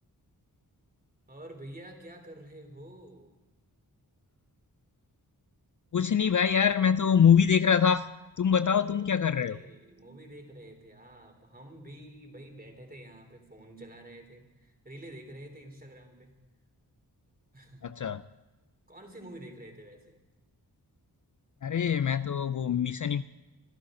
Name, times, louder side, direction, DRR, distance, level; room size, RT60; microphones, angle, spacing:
voice 1, 1.3-3.3 8.8-16.3 17.5-17.9 18.9-20.2, right 1 dB, 20° right, 3 dB, 3.6 m, -48 dB
voice 2, 5.9-8.1 8.4-9.6 17.8-18.2 21.6-23.2, left 7 dB, 50° left, 13 dB, 0.5 m, -24 dB
25.0 x 12.5 x 3.8 m, 1.1 s
wide cardioid pair, 70°, 40 cm